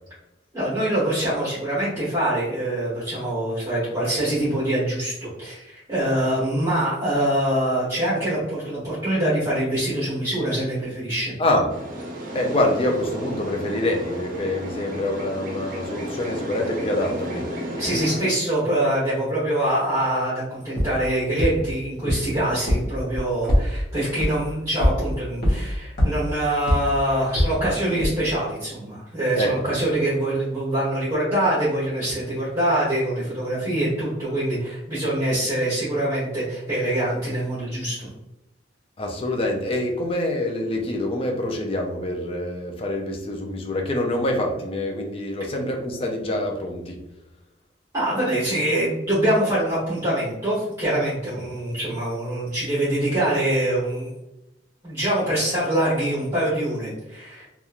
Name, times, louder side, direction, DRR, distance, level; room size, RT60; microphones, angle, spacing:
voice 1, 0.5-11.3 17.6-38.1 47.9-54.1 54.8-57.5, right 1 dB, 20° right, -11 dB, 1.1 m, -24 dB
sound 1, 11.7-18.3, equal, 50° right, 0.6 m, -33 dB
voice 2, 12.3-17.5 29.3-29.6 39.0-47.0, left 1 dB, 30° left, 2 dB, 0.4 m, -25 dB
sound 2, 20.8-20.9 21.4-21.5 22.1-22.2 22.7-22.8 23.1-23.6 24.2-24.3 24.8-24.9 25.4-25.5 26.0-26.1 26.7-26.8 27.4-27.5 28.0-28.1, equal, 60° left, 0.9 m, -18 dB
2.9 x 2.3 x 2.4 m, 0.95 s
head